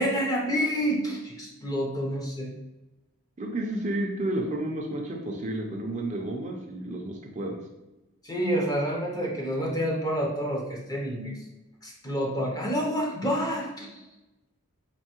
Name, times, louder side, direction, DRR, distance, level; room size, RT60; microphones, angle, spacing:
voice 1, 0.0-2.5 8.2-11.4 11.8-14.0, equal, 15° left, -2 dB, 0.6 m, -28 dB
voice 2, 3.4-7.6, right 1 dB, 35° right, 0 dB, 0.4 m, -31 dB
4.4 x 2.6 x 2.9 m, 1.0 s
head